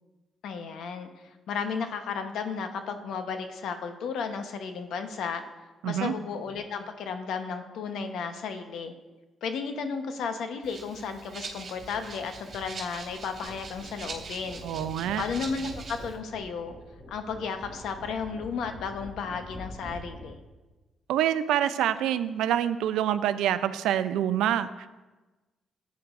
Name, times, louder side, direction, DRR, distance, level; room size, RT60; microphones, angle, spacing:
voice 1, 0.4-1.1 1.5-5.4 5.8-8.9 9.4-14.6 15.2-16.7 17.1-20.4, left 5 dB, 75° left, 7 dB, 1.0 m, -34 dB
voice 2, 5.8-6.1 14.6-15.2 21.1-24.9, right 11 dB, 85° right, 12 dB, 0.5 m, -26 dB
Rattle (instrument), 10.6-16.2, right 4 dB, 50° right, 2.3 m, -43 dB
sound 1, 11.8-20.3, equal, 10° left, 2.3 m, -45 dB
14.0 x 9.3 x 2.6 m, 1.2 s
cardioid pair, 90°, 0 cm